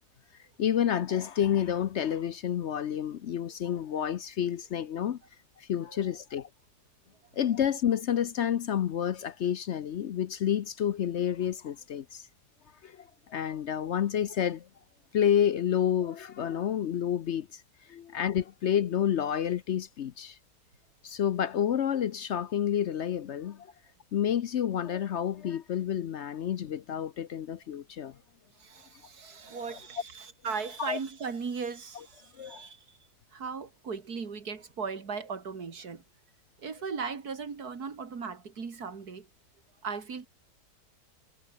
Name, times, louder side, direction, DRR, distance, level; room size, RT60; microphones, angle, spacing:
voice 1, 0.6-5.2 5.6-6.5 7.3-12.3 12.8-14.7 15.1-17.6 17.9-20.4 21.0-23.7 24.1-28.2 29.7-29.8 30.8-31.0 32.4-32.6, left 9 dB, 60° left, 0.7 m, -29 dB
voice 2, 28.6-33.0 33.3-36.0 36.6-39.3 39.8-40.3, right 5 dB, 60° right, 2.8 m, -37 dB
omnidirectional pair, 1.8 m